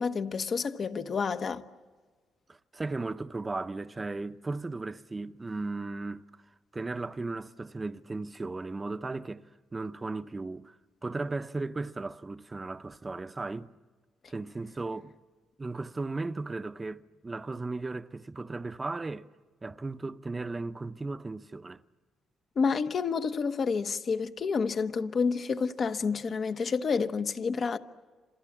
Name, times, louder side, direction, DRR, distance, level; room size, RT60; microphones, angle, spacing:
voice 1, 0.0-1.6 22.6-27.8, left 5 dB, 45° left, 1.1 m, -29 dB
voice 2, 2.5-6.2 6.7-9.4 9.7-10.8 11.0-13.7 14.3-15.1 15.6-19.3 19.6-21.8, right 3 dB, 25° right, 0.8 m, -36 dB
30.0 x 27.0 x 7.3 m
cardioid pair, 90°, 0 cm